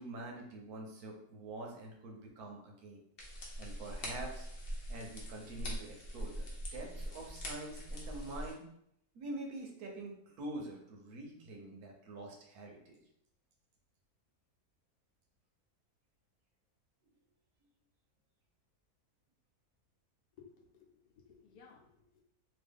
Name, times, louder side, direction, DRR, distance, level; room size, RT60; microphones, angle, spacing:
voice 1, 0.0-3.0 3.6-4.5 4.9-8.6 9.1-13.0, right 2 dB, 75° right, 1 dB, 1.2 m, -46 dB
sound 1, 3.2-8.5, equal, 50° left, 0.8 m, -42 dB
voice 2, 20.4-22.2, left 6 dB, 90° left, -2 dB, 1.2 m, -59 dB
3.0 x 2.4 x 3.4 m, 0.73 s
omnidirectional pair, 1.6 m